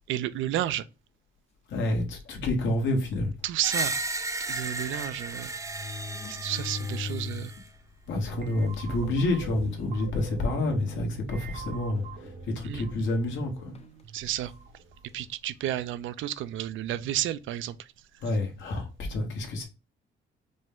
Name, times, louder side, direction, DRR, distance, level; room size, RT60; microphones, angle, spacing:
voice 1, 0.1-0.9 3.4-4.0 4.5-5.5 6.3-7.5 12.6-12.8 14.1-14.5 15.1-17.9, right 12 dB, 80° right, 0.4 m, -31 dB
voice 2, 1.7-3.3 8.1-12.3 12.5-13.7 18.2-19.6, left 2 dB, 70° left, 1.4 m, -28 dB
sound 1, 1.8-2.1 2.8-2.9 3.2-3.3 4.7-4.8 5.4-7.7 8.1-8.2 9.1-9.2 9.5-9.9 10.5-10.7 12.0-12.8 13.7-14.0, left 5 dB, 30° left, 0.5 m, -39 dB
Screech, 3.6-7.6, right 2 dB, 15° right, 0.6 m, -34 dB
sound 2, 8.3-15.2, right 5 dB, 50° right, 0.7 m, -42 dB
5.1 x 2.2 x 3.5 m
cardioid pair, 90°, 20 cm